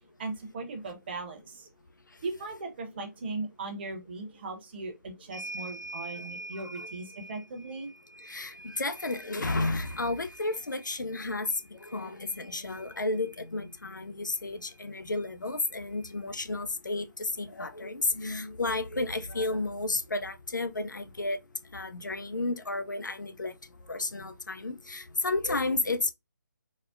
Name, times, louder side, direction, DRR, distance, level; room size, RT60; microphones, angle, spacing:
voice 1, 0.2-1.7 2.2-7.9, right 3 dB, 35° right, 0.9 m, -38 dB
sound 1, 5.3-13.4 14.7-14.8 15.1-16.2, right 2 dB, 85° right, 0.5 m, -46 dB
voice 2, 6.1-6.5 6.8-6.9 8.2-21.4 21.7-23.5 23.9-26.1, left 2 dB, 75° left, 0.5 m, -32 dB
4.1 x 2.1 x 2.4 m
figure-of-eight pair, 145°, 10 cm